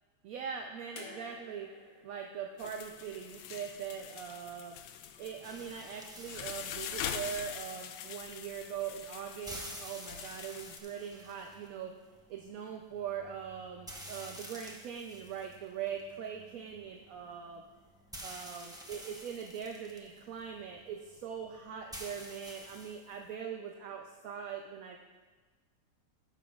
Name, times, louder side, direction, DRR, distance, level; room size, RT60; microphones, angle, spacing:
voice 1, 0.2-1.7 2.0-4.8 5.2-11.9 12.3-17.6 18.2-25.0, right 7 dB, 65° right, 3 dB, 0.9 m, -41 dB
sound 1, 1.0-4.1 5.3-5.4, left 2 dB, 55° left, 1.8 m, -53 dB
sound 2, 2.6-10.8, left 9 dB, 85° left, 1.2 m, -43 dB
sound 3, 5.4-23.3, equal, 5° right, 0.4 m, -51 dB
15.0 x 7.0 x 2.4 m, 1.3 s
omnidirectional pair, 1.9 m